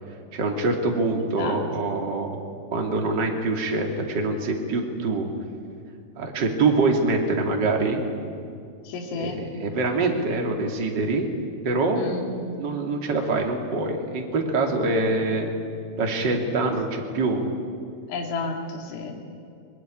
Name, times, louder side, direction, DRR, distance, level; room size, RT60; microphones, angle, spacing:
voice 1, 0.3-2.3 2.7-5.3 6.2-8.0 9.2-11.3 11.6-12.0 12.6-15.5 16.0-17.4, right 3 dB, 35° right, 2 dB, 2.0 m, -24 dB
voice 2, 1.2-1.6 8.8-9.4 12.0-12.3 18.1-19.2, left 4 dB, 70° left, 2 dB, 5.1 m, -31 dB
23.0 x 21.0 x 10.0 m, 2.4 s
omnidirectional pair, 5.8 m